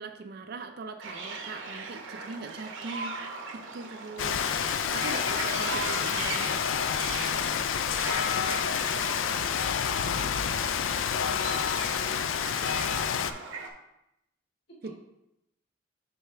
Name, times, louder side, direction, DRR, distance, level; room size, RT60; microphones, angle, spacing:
voice 1, 0.0-3.2 3.5-4.5 4.9-6.7 14.8-14.9, right 3 dB, 50° right, 6 dB, 0.4 m, -41 dB
sound 1, 1.0-13.7, right 4 dB, 75° right, 0.8 m, -39 dB
Rain, 4.2-13.3, left 8 dB, 75° left, 0.4 m, -28 dB
voice 2, 7.8-10.7 11.2-13.3 14.7-14.8, equal, 55° left, -5 dB, 1.8 m, -51 dB
6.7 x 4.6 x 3.3 m, 0.86 s
head